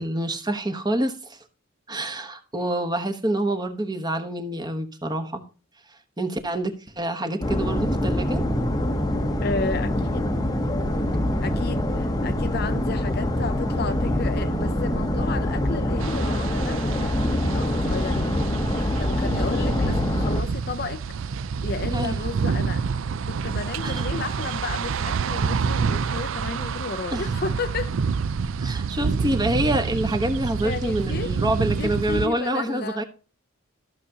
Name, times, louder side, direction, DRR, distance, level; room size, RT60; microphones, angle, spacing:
voice 1, 0.0-1.4 1.9-5.4 6.2-8.4 21.9-22.2 23.8-24.1 27.1-27.3 28.6-33.0, right 1 dB, 20° right, 1.0 m, -27 dB
sound 1, 7.4-20.4, left 1 dB, 20° left, 0.8 m, -24 dB
voice 2, 9.4-10.4 11.4-18.4 19.0-21.0 21.6-22.9 23.3-28.0 30.6-31.3 31.8-33.0, left 4 dB, 50° left, 0.5 m, -32 dB
sound 2, 16.0-32.3, right 5 dB, 70° right, 0.4 m, -28 dB
14.0 x 6.7 x 2.8 m
head